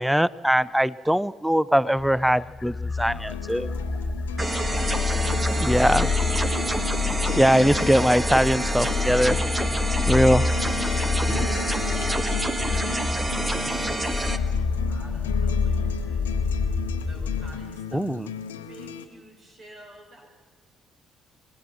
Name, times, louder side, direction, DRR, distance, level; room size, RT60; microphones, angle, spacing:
voice 1, 0.0-3.7 5.6-6.0 7.4-9.4 10.1-10.5 11.3-11.5 17.9-18.3, equal, 5° right, 20 dB, 0.6 m, -21 dB
sound 1, 2.0-17.6, left 4 dB, 35° left, 1.8 m, -27 dB
sound 2, 3.0-19.1, left 8 dB, 90° left, 1.0 m, -38 dB
sound 3, 4.4-14.4, right 2 dB, 25° right, 1.7 m, -28 dB
voice 2, 5.4-7.7 12.4-16.3 17.0-18.3 18.7-20.3, right 1 dB, 50° right, 1 dB, 6.5 m, -48 dB
25.5 x 17.5 x 6.1 m, 1.3 s
hypercardioid pair, 50°, 0 cm